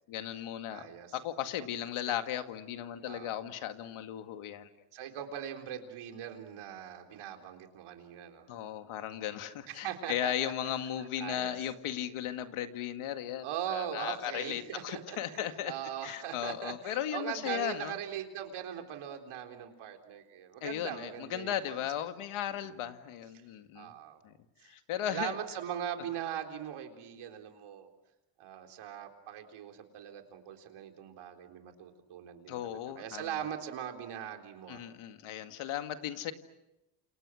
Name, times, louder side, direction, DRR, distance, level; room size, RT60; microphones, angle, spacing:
voice 1, 0.1-0.9 1.1-4.7 8.5-15.7 16.0-18.0 20.6-23.9 24.2-24.3 24.6-25.3 32.5-33.3 34.7-36.3, left 11 dB, 80° left, 8 dB, 2.1 m, -36 dB
voice 2, 0.7-1.2 3.1-3.3 4.9-8.5 9.7-10.5 11.0-11.6 13.4-21.8 22.5-22.8 23.8-24.2 24.6-24.7 25.1-27.9 28.4-34.8, right 10 dB, 75° right, 4 dB, 4.0 m, -40 dB
29.5 x 28.0 x 6.4 m, 0.94 s
cardioid pair, 100°, 49 cm